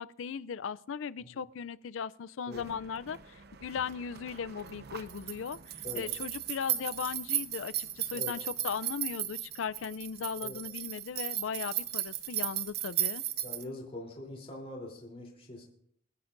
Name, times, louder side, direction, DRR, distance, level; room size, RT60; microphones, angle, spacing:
voice 1, 0.0-13.2, left 6 dB, 80° left, 0.4 m, -38 dB
sound 1, 2.5-13.6, right 12 dB, 55° right, 0.9 m, -36 dB
voice 2, 13.4-15.6, left 1 dB, 30° left, 3.4 m, -43 dB
27.0 x 10.5 x 2.6 m
head